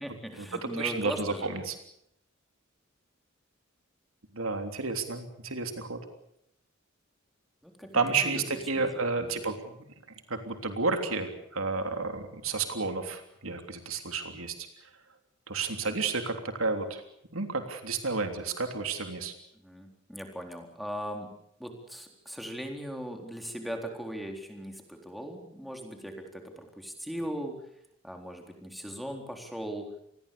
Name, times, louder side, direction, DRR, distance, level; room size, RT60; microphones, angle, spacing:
voice 1, 0.0-1.5 7.6-9.4 19.5-21.3 21.6-27.6 28.0-29.9, equal, ahead, 3 dB, 4.0 m, -39 dB
voice 2, 0.8-1.7 4.3-6.0 7.9-9.7 10.3-14.5 15.5-17.0 17.3-19.3, right 4 dB, 90° right, 6 dB, 3.3 m, -31 dB
28.0 x 20.5 x 7.0 m, 0.75 s
head